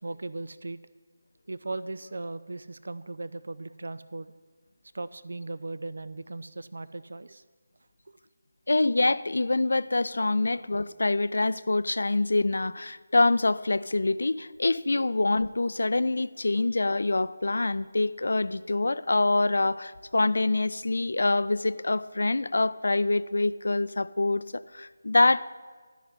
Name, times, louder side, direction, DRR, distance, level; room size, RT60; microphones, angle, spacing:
voice 1, 0.0-0.8 1.5-4.3 4.9-7.4 8.1-8.2, right 2 dB, 60° right, 15 dB, 0.6 m, -37 dB
voice 2, 8.7-25.5, left 2 dB, 60° left, 17 dB, 0.4 m, -25 dB
13.5 x 5.9 x 9.6 m, 1.5 s
figure-of-eight pair, 155°, 0 cm